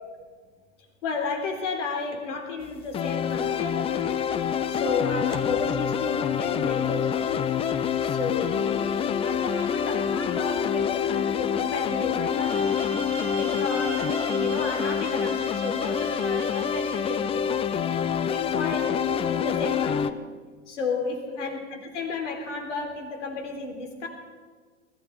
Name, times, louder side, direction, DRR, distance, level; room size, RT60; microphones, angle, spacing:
voice 1, 1.0-4.3 4.7-7.5 8.0-8.9 9.2-12.8 13.4-17.8 18.3-20.2 20.7-24.1, left 4 dB, 75° left, 3 dB, 3.6 m, -32 dB
sound 1, 2.9-20.1, left 7 dB, 15° left, 0.4 m, -26 dB
sound 2, 12.3-17.2, right 7 dB, 35° right, 1.8 m, -41 dB
20.5 x 14.0 x 4.7 m, 1.5 s
hypercardioid pair, 105°, 36 cm